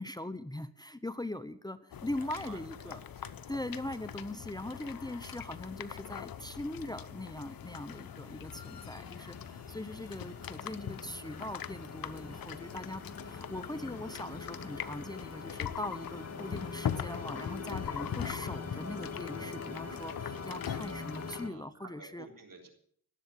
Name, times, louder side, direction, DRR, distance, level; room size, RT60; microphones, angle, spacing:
voice 1, 0.0-3.0 3.5-22.3, left 1 dB, 10° left, 12 dB, 0.9 m, -41 dB
sound 1, 1.9-21.4, left 9 dB, 70° left, 0.9 m, -42 dB
voice 2, 2.3-3.3 21.4-22.7, right 4 dB, 60° right, 4 dB, 3.6 m, -52 dB
sound 2, 7.1-21.5, left 4 dB, 45° left, 2.0 m, -44 dB
19.0 x 8.0 x 7.5 m, 0.63 s
cardioid pair, 55°, 37 cm